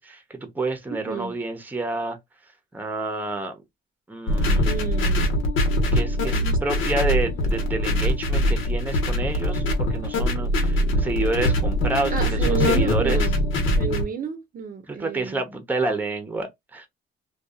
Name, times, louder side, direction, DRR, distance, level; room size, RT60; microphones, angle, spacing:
voice 1, 0.0-2.2 2.7-3.6 4.1-4.7 5.9-13.3 14.9-16.9, right 2 dB, 10° right, 0.7 m, -29 dB
voice 2, 1.1-1.4 4.6-5.3 6.3-6.6 12.1-13.4 13.8-15.4, right 7 dB, 45° right, 0.6 m, -31 dB
sound 1, 4.3-14.0, left 1 dB, 90° left, 1.0 m, -22 dB
2.7 x 2.3 x 2.3 m
cardioid pair, 115°, 20 cm